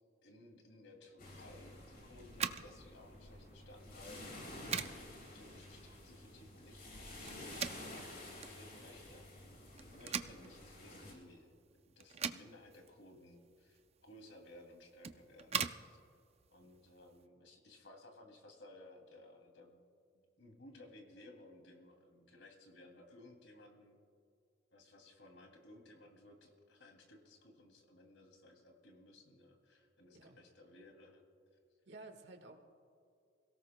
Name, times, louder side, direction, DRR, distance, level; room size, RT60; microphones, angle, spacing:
voice 1, 0.2-5.1 5.3-9.3 9.8-16.0 16.5-19.8 20.4-24.0 24.7-31.2, left 1 dB, 80° left, 3 dB, 2.6 m, -59 dB
sound 1, 1.2-11.1, left 1 dB, 50° left, 4.2 m, -51 dB
sound 2, 2.3-17.3, right 7 dB, 35° right, 0.5 m, -45 dB
voice 2, 31.9-32.5, right 2 dB, 60° right, 5 dB, 1.5 m, -53 dB
29.0 x 17.5 x 2.2 m, 2.4 s
head